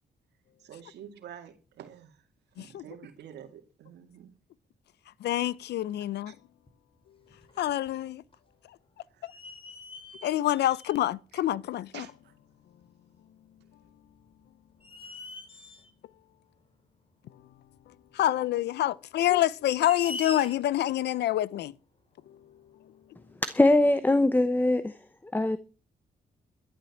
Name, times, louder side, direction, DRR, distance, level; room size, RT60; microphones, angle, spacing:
voice 1, 0.6-2.2 2.5-4.3 6.3-6.4 9.1-9.3 11.3-11.4 11.9-12.3, right 9 dB, 85° right, 2.2 m, -48 dB
voice 2, 5.2-6.3 7.6-8.2 10.2-12.1 18.2-21.7, left 13 dB, 80° left, 0.6 m, -27 dB
sound 1, 6.7-6.8 7.3-8.0 8.3-8.4 9.3-11.1 12.1-12.2 14.1-14.3 14.8-15.9 17.7-17.8 19.4-20.8, left 3 dB, 30° left, 4.0 m, -43 dB
voice 3, 23.4-25.6, left 2 dB, 10° left, 0.8 m, -23 dB
12.0 x 11.0 x 7.2 m
cardioid pair, 80°, 17 cm